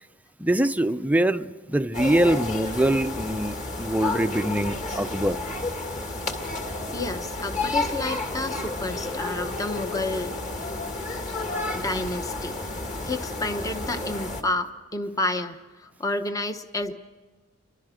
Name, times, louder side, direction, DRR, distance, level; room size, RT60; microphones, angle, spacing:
voice 1, 0.4-5.4, right 1 dB, 5° right, 0.6 m, -24 dB
sound 1, 1.9-14.4, left 2 dB, 35° left, 2.4 m, -31 dB
voice 2, 6.9-10.3 11.7-12.6 13.0-16.9, left 2 dB, 15° left, 0.9 m, -30 dB
30.0 x 24.5 x 5.1 m
head